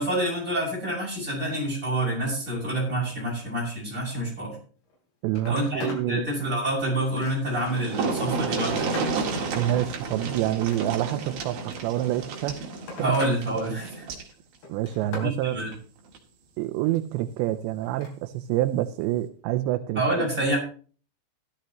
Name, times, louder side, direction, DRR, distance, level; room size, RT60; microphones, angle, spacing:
voice 1, 0.0-4.5 5.5-9.1 13.0-14.1 15.2-15.7 19.9-20.6, right 1 dB, 15° right, -4 dB, 6.8 m, -27 dB
Telephone, 4.8-5.0 5.3-6.1 6.5-7.6 8.2-9.2 10.5-11.3 12.3-13.4 13.7-14.2 14.6-15.3 17.8-18.2 19.6-19.7, left 3 dB, 70° left, 5.6 m, -40 dB
voice 2, 5.2-6.2 9.6-12.6 14.7-15.6 16.6-20.3, right 14 dB, 85° right, 7 dB, 2.9 m, -27 dB
sound 1, 7.2-7.3 7.5-14.3 15.6-15.7 16.1-16.2, right 4 dB, 60° right, 3.5 m, -31 dB
14.5 x 13.0 x 3.1 m, 0.40 s
omnidirectional pair, 5.1 m